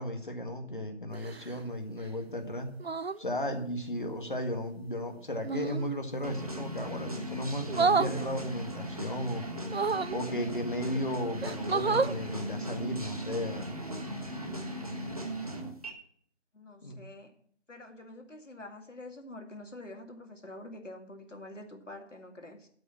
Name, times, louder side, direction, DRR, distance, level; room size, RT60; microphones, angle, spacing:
voice 1, 0.0-2.7 3.2-9.5 10.1-13.8 16.8-17.0, equal, 45° left, 5 dB, 1.7 m, -35 dB
sound 1, 1.1-1.6 2.8-3.2 5.4-5.9 7.7-8.1 9.6-10.2 10.9-11.0 11.4-12.2 13.8-14.0, right 4 dB, 60° right, 0.5 m, -29 dB
sound 2, 6.2-15.9, right 1 dB, 30° right, 1.3 m, -38 dB
voice 2, 16.5-17.3 17.7-22.7, left 1 dB, 85° left, 4 dB, 2.3 m, -46 dB
12.5 x 4.4 x 7.3 m, 0.62 s
figure-of-eight pair, 170°, 36 cm